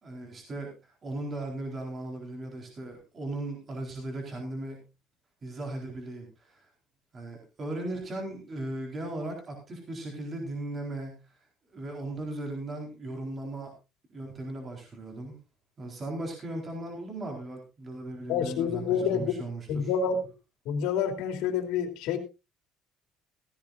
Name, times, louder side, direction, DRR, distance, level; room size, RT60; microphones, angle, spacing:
voice 1, 0.0-4.8 5.4-6.7 7.1-11.2 11.7-13.7 14.1-15.4 15.8-19.9, right 2 dB, 25° right, 1 dB, 4.1 m, -37 dB
voice 2, 18.3-19.3 19.7-20.2 20.7-22.2, left 7 dB, 85° left, 6 dB, 2.9 m, -28 dB
16.0 x 15.0 x 2.5 m, 0.27 s
cardioid pair, 160°, 0 cm